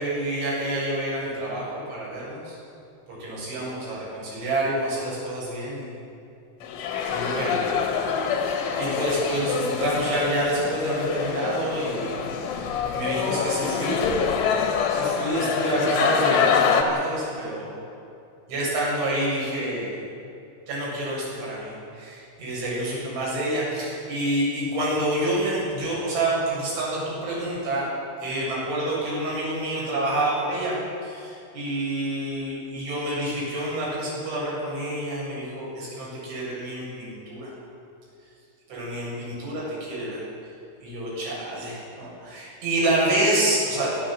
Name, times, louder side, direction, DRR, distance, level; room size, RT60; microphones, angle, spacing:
voice 1, 0.0-2.6 3.2-6.0 7.1-7.8 8.4-14.0 14.9-17.7 18.5-20.0 20.7-27.9 28.2-37.5 38.7-40.2 40.8-44.0, right 1 dB, 75° right, -6 dB, 10.0 m, -28 dB
sound 1, 6.6-16.8, left 6 dB, 85° left, 4.5 m, -25 dB
29.0 x 13.0 x 7.7 m, 2.5 s
omnidirectional pair, 5.4 m